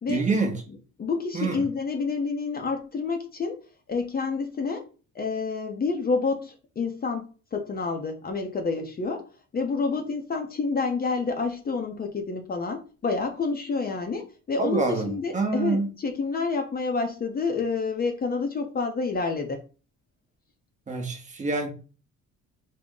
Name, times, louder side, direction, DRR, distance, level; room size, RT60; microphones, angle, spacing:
voice 1, 0.1-0.6 1.3-1.6 14.6-15.9 20.9-21.7, right 3 dB, 25° right, 0.8 m, -26 dB
voice 2, 1.0-3.6 3.9-4.9 5.1-19.6, left 4 dB, 30° left, 0.6 m, -28 dB
3.7 x 2.1 x 3.6 m
cardioid pair, 105°, 30 cm